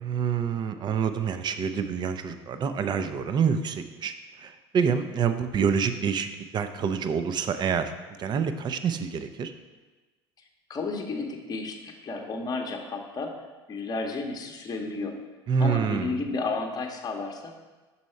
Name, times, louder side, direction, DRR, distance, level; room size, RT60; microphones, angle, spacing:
voice 1, 0.0-4.1 4.4-7.9 8.2-9.5 15.5-16.2, right 6 dB, 30° right, 10 dB, 0.5 m, -27 dB
voice 2, 10.7-13.3 13.7-15.2 15.6-17.5, left 3 dB, 30° left, 2 dB, 0.9 m, -32 dB
6.2 x 4.1 x 4.4 m, 1.3 s
figure-of-eight pair, 70°, 14 cm